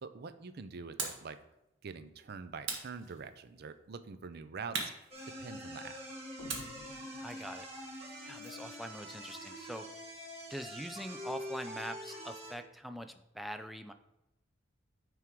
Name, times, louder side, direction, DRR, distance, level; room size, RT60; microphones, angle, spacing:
voice 1, 0.0-1.4 1.8-4.8 5.4-6.0, right 5 dB, 55° right, 11 dB, 0.5 m, -45 dB
sound 1, 1.0-1.3 2.6-3.6 4.7-5.8 6.5-8.7, right 4 dB, 85° right, 1.4 m, -42 dB
sound 2, 5.1-12.5, equal, 35° right, 1.9 m, -45 dB
sound 3, 6.4-8.0, left 4 dB, 80° left, 0.5 m, -53 dB
voice 2, 7.2-7.7 8.2-9.9 10.5-13.9, equal, ahead, 8 dB, 0.4 m, -43 dB
9.4 x 3.6 x 4.5 m, 0.88 s
head